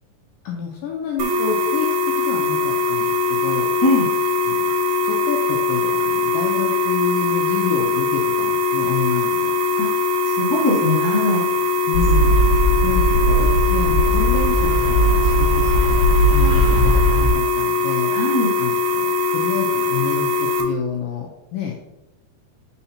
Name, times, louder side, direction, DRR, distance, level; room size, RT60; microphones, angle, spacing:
voice 1, 0.5-1.9 2.2-3.7 4.5-4.7 5.0-9.5 11.9-12.4 12.8-16.0 16.3-18.1 18.6-21.7, left 7 dB, 80° left, 0 dB, 2.1 m, -29 dB
sound 1, 1.2-20.6, left 3 dB, 75° right, 2.7 m, -21 dB
voice 2, 9.8-11.4 18.1-18.5, left 2 dB, 15° left, -7 dB, 0.7 m, -21 dB
sound 2, 11.9-17.3, equal, 35° left, 1.9 m, -18 dB
6.8 x 5.8 x 2.8 m, 0.92 s
omnidirectional pair, 4.6 m